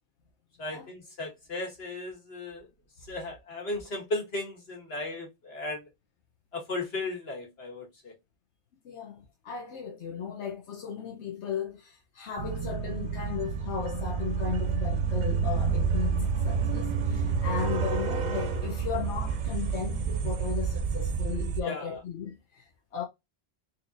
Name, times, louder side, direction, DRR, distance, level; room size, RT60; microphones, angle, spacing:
voice 1, 0.6-2.7 3.1-5.8 6.5-8.1 21.6-21.9, left 2 dB, 65° left, 1.8 m, -36 dB
voice 2, 8.8-23.0, left 7 dB, 85° left, 1.0 m, -36 dB
sound 1, 12.4-21.6, right 5 dB, 50° right, 0.6 m, -29 dB
4.2 x 2.8 x 2.5 m
omnidirectional pair, 1.1 m